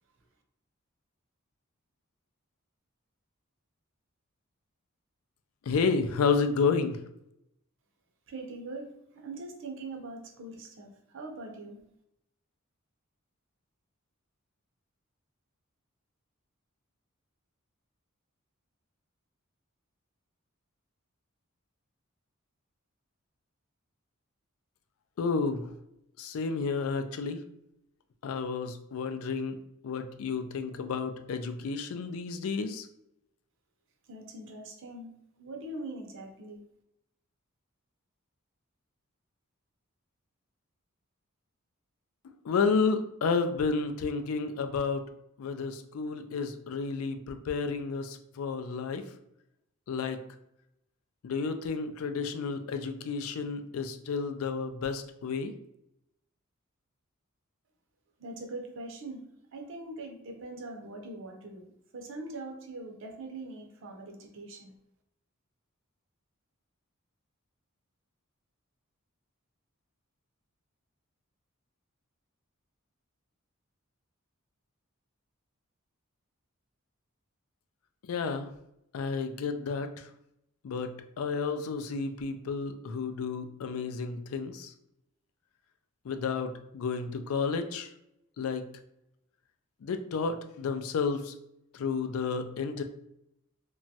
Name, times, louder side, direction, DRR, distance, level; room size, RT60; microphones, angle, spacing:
voice 1, 5.7-7.0 25.2-25.6 26.2-27.4 28.2-29.6 29.8-32.9 42.4-45.0 45.4-49.0 49.9-50.2 51.2-55.5 78.1-78.5 78.9-80.0 80.6-84.7 86.1-87.9 88.4-88.6 89.8-91.3 91.7-92.8, left 5 dB, 75° left, 8 dB, 0.3 m, -31 dB
voice 2, 8.3-11.8 34.1-35.1 35.4-36.6 58.2-59.2 59.5-64.7, right 2 dB, 60° right, 3 dB, 0.5 m, -42 dB
2.9 x 2.2 x 2.7 m, 0.80 s
head